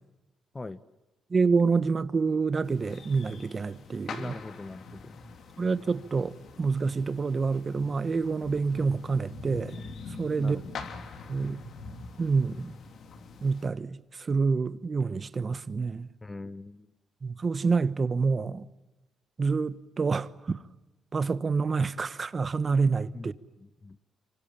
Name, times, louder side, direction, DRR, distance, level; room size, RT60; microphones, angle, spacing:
voice 1, 1.3-4.3 5.6-9.7 10.2-10.6 11.3-11.6 12.2-12.7 13.4-16.1 17.2-18.6 19.4-20.6 21.1-23.3, right 4 dB, 40° right, 1.2 m, -27 dB
sound 1, 2.6-13.7, left 4 dB, 65° left, 3.2 m, -44 dB
voice 2, 4.2-5.2 10.4-10.7 16.2-16.9 23.1-23.3 23.6-24.0, left 3 dB, 25° left, 1.1 m, -41 dB
26.0 x 24.5 x 8.8 m
cardioid pair, 80°, 0 cm